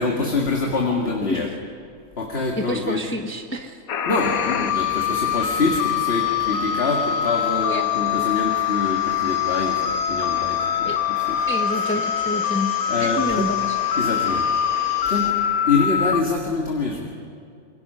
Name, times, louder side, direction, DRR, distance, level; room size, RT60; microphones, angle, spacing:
voice 1, 0.0-1.5 2.2-3.0 4.1-11.5 12.9-13.5 14.0-14.6 15.0-15.4 15.7-17.1, left 3 dB, 45° left, 0 dB, 2.1 m, -25 dB
voice 2, 2.6-3.8 7.7-7.8 10.8-11.0 11.5-13.8, left 1 dB, 10° left, 3 dB, 1.1 m, -28 dB
sound 1, 3.9-16.2, left 10 dB, 80° left, 1.3 m, -24 dB
sound 2, 4.1-15.3, right 2 dB, 85° right, 4.1 m, -39 dB
Wind instrument woodwind instrument, 7.2-12.3, left 5 dB, 55° right, 3.4 m, -37 dB
27.5 x 23.5 x 5.6 m, 2.4 s
omnidirectional pair, 1.5 m